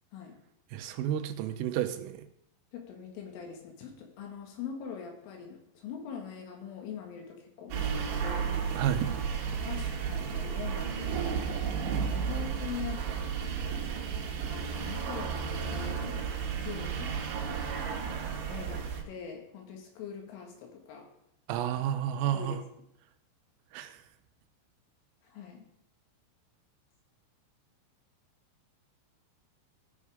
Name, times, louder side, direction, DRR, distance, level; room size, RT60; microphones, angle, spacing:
voice 1, 0.7-2.3 8.8-9.1 21.5-22.6 23.7-24.0, right 10 dB, 90° right, 9 dB, 3.4 m, -31 dB
voice 2, 2.7-8.5 9.6-11.4 12.1-13.9 14.3-16.3 16.6-17.2 18.5-21.1 22.3-22.6 25.2-25.6, left 7 dB, 80° left, 2 dB, 4.2 m, -43 dB
sound 1, 7.7-19.0, right 6 dB, 70° right, 3.3 m, -33 dB
15.5 x 5.5 x 4.9 m, 0.78 s
omnidirectional pair, 5.7 m